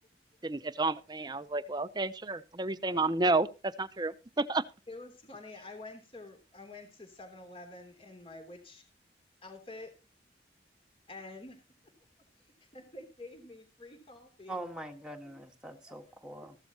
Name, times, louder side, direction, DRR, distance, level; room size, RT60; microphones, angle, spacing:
voice 1, 0.4-3.5 3.8-4.6, right 3 dB, 25° right, 0.7 m, -30 dB
voice 2, 4.9-8.8 9.4-9.9 11.1-11.6 12.7-14.6 15.3-15.4 16.3-16.5, left 2 dB, 30° left, 3.1 m, -48 dB
voice 3, 14.5-16.6, right 1 dB, 5° right, 1.6 m, -43 dB
15.0 x 12.5 x 3.0 m
head